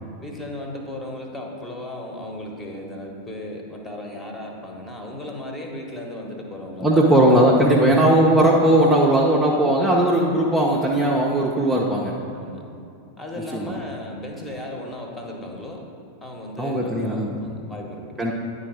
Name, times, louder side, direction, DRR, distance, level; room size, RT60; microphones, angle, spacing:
voice 1, 0.2-7.1 10.2-10.3 12.3-12.6 13.2-15.8 16.2-18.2, left 1 dB, 15° left, 1 dB, 1.1 m, -35 dB
voice 2, 6.8-12.2 13.5-13.7 16.6-17.3 18.2-18.3, right 1 dB, 5° right, -4 dB, 0.7 m, -18 dB
10.0 x 3.9 x 4.7 m, 2.6 s
figure-of-eight pair, 90°, 0 cm